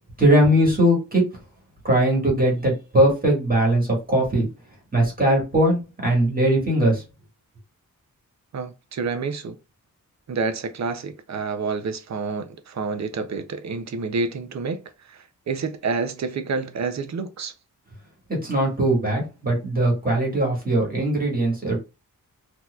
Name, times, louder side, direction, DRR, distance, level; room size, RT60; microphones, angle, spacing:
voice 1, 0.2-1.2 1.8-4.5 4.9-7.0 18.3-21.8, right 1 dB, 25° right, 1.6 m, -20 dB
voice 2, 8.5-9.5 10.3-17.5, right 4 dB, 55° right, 0.5 m, -28 dB
4.2 x 2.8 x 2.3 m
wide cardioid pair, 180°, 35 cm